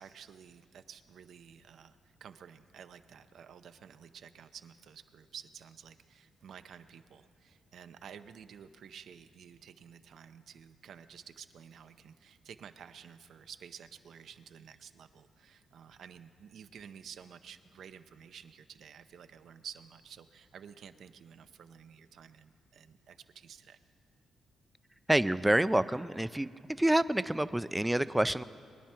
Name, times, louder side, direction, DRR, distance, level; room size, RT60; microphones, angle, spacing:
voice 1, 0.0-23.8, right 8 dB, 70° right, 10 dB, 0.6 m, -52 dB
voice 2, 25.1-26.5 26.8-28.4, right 1 dB, 5° right, 15 dB, 0.3 m, -27 dB
22.5 x 10.5 x 4.4 m, 2.6 s
cardioid pair, 125°, 0 cm